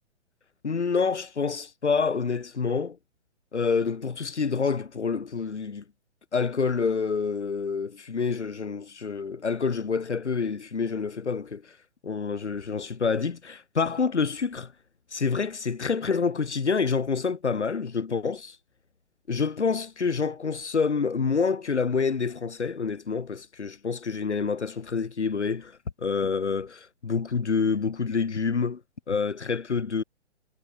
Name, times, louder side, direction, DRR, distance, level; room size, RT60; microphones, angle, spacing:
voice 1, 0.6-3.0 3.5-5.8 6.3-11.6 12.0-14.7 15.1-18.6 19.3-28.8 29.1-30.0, left 5 dB, 70° left, 4.7 m, -27 dB
figure-of-eight pair, 130°, 35 cm